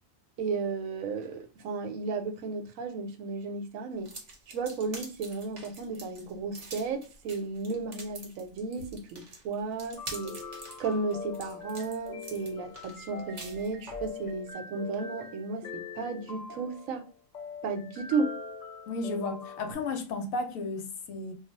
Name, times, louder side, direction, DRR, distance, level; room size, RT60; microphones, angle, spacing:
voice 1, 0.4-4.1 4.5-10.4 10.8-17.0 17.6-18.3, right 4 dB, 80° right, 1.0 m, -34 dB
sound 1, 4.0-14.1, right 2 dB, 40° right, 0.8 m, -45 dB
sound 2, 9.9-19.7, left 5 dB, 45° left, 0.6 m, -43 dB
voice 2, 18.9-21.3, left 3 dB, 75° left, 1.0 m, -33 dB
2.4 x 2.3 x 3.8 m
omnidirectional pair, 1.4 m